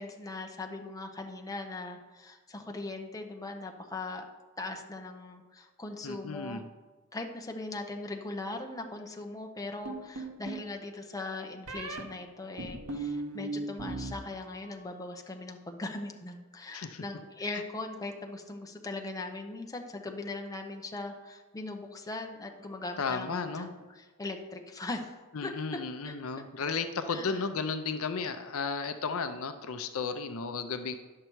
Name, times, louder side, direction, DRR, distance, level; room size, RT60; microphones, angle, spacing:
voice 1, 0.0-4.2 4.6-6.6 7.1-25.1 25.4-25.5 26.0-26.1 27.1-27.4, left 2 dB, 15° left, 3 dB, 0.7 m, -40 dB
voice 2, 6.0-6.7 16.7-17.0 17.5-17.6 23.0-23.7 25.3-31.0, left 5 dB, 65° left, 9 dB, 0.6 m, -34 dB
sound 1, 9.9-10.7 11.7-12.0 12.6-14.1 14.4-15.0, right 2 dB, 70° right, 1.2 m, -37 dB
9.8 x 6.7 x 4.6 m, 1.3 s
head